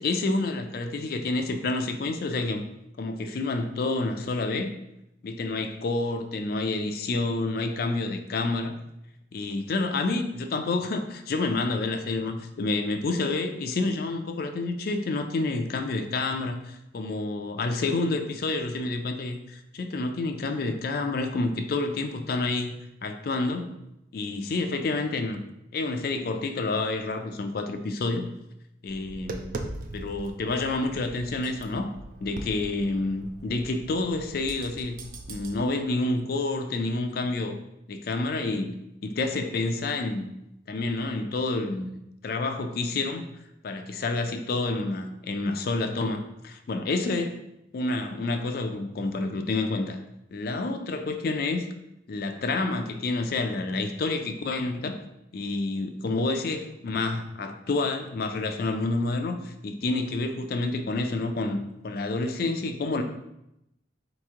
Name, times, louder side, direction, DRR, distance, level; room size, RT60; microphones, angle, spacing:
voice 1, 0.0-2.6 3.0-4.7 5.2-8.8 9.3-23.7 24.1-25.4 25.7-28.3 28.8-29.6 29.9-31.9 32.2-35.0 35.3-37.5 37.9-40.3 40.7-42.0 42.2-43.3 43.6-47.4 47.7-50.0 50.3-51.7 52.1-54.9 55.3-61.6 61.8-63.0, left 2 dB, 50° left, 6 dB, 0.4 m, -29 dB
Tap, 28.9-35.6, right 2 dB, 45° right, 0.4 m, -41 dB
4.2 x 3.0 x 3.6 m, 0.84 s
head